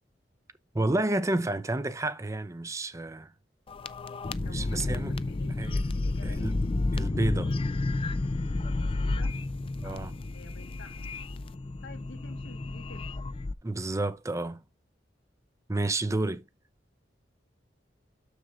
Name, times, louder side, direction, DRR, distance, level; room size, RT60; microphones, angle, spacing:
voice 1, 0.7-3.3 4.4-5.2 5.6-5.8 6.2-6.6 6.9-7.5 9.8-10.1 13.6-14.6 15.7-16.4, right 2 dB, 15° right, 0.6 m, -30 dB
sound 1, 3.7-13.5, left 2 dB, 30° left, 0.4 m, -31 dB
voice 2, 4.4-6.5 8.8-9.3 9.8-11.1 11.8-13.1, left 2 dB, 90° left, 1.9 m, -50 dB
6.7 x 6.7 x 3.6 m
head